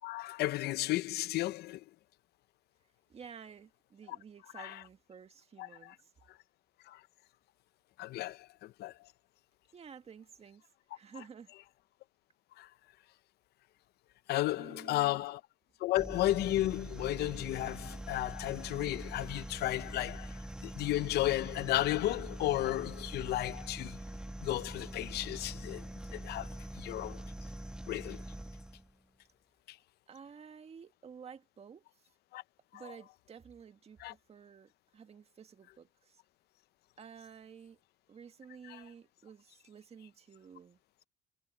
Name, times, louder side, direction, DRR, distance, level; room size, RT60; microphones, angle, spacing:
voice 1, 0.0-1.8 4.6-4.7 5.6-5.9 6.9-7.0 8.0-8.9 12.6-12.7 14.3-15.4 15.8-24.0 24.4-27.2 27.9-28.2 29.7-29.8 32.3-32.4 32.7-32.8 34.0-34.1 38.7-38.8, left 15 dB, 75° left, 0.8 m, -34 dB
voice 2, 3.1-6.1 8.2-8.4 9.7-10.7 10.9-11.5 14.6-15.2 30.1-31.8 32.7-36.2 37.0-37.8 38.1-40.8, right 7 dB, 35° right, 1.8 m, -52 dB
sound 1, 15.9-28.9, right 1 dB, 5° right, 1.6 m, -44 dB
cardioid pair, 110°, 17 cm